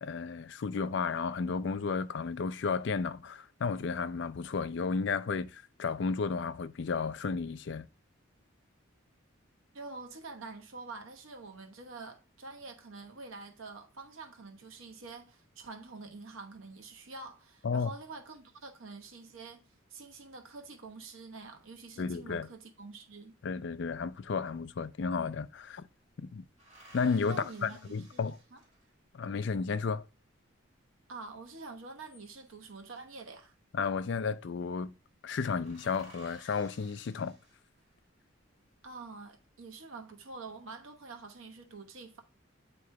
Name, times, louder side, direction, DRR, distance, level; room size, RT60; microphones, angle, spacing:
voice 1, 0.0-7.9 17.6-17.9 22.0-22.5 23.4-25.9 26.2-26.4 26.9-28.4 29.1-30.0 33.7-34.9 35.2-37.4, left 5 dB, 60° left, 0.4 m, -33 dB
voice 2, 9.7-19.6 19.9-23.4 27.3-28.6 31.1-33.5 38.8-42.2, right 3 dB, 80° right, 1.0 m, -47 dB
sound 1, 24.5-24.6 24.8-25.8 26.6-29.1 31.8-32.7 33.9-34.3 34.6-34.7 35.1-35.2 35.4-38.0 38.5-39.2, right 1 dB, 35° right, 2.3 m, -58 dB
8.3 x 3.0 x 4.7 m
head